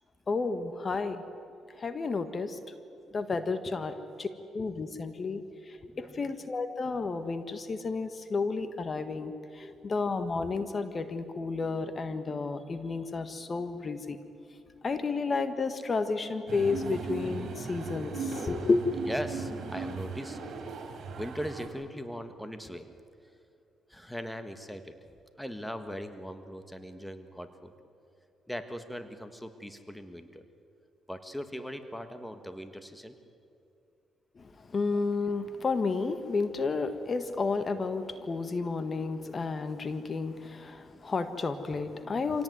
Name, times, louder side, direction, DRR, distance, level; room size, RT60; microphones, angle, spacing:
voice 1, 0.3-1.2 1.8-2.6 3.1-4.3 4.5-14.2 14.8-18.9 34.4-42.4, left 4 dB, 35° left, 10 dB, 1.5 m, -31 dB
sound 1, 16.5-21.7, right 4 dB, 65° right, 4.3 m, -37 dB
voice 2, 19.1-20.4 21.1-22.9 23.9-24.9 25.4-27.7 28.5-30.4 31.1-33.1, equal, 5° left, 8 dB, 1.6 m, -40 dB
26.0 x 17.5 x 9.5 m, 2.6 s
cardioid pair, 90°, 0 cm